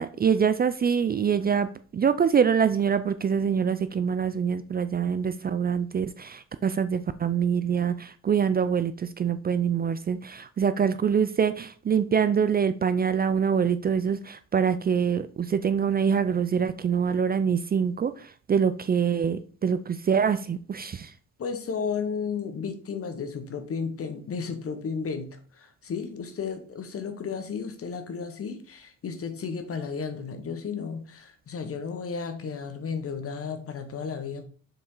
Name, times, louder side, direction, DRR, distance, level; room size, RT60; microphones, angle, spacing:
voice 1, 0.0-21.1, right 7 dB, 30° right, 12 dB, 0.4 m, -25 dB
voice 2, 21.4-34.4, left 5 dB, 50° left, 8 dB, 1.3 m, -33 dB
7.0 x 4.2 x 3.8 m, 0.42 s
cardioid pair, 90°, 30 cm